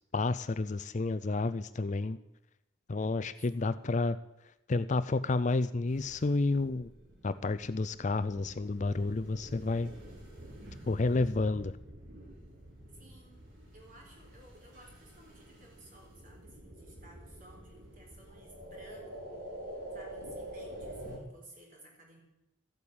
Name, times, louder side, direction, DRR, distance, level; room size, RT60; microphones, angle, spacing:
voice 1, 0.1-2.2 2.9-4.2 4.7-6.9 7.2-9.9 10.9-11.7, left 3 dB, 40° left, 14 dB, 0.5 m, -30 dB
sound 1, 5.9-21.2, right 1 dB, 70° right, 5.1 m, -48 dB
voice 2, 12.9-13.4 13.7-19.5 19.9-22.2, right 1 dB, 45° right, 0 dB, 4.3 m, -57 dB
14.0 x 8.6 x 8.6 m, 0.90 s
head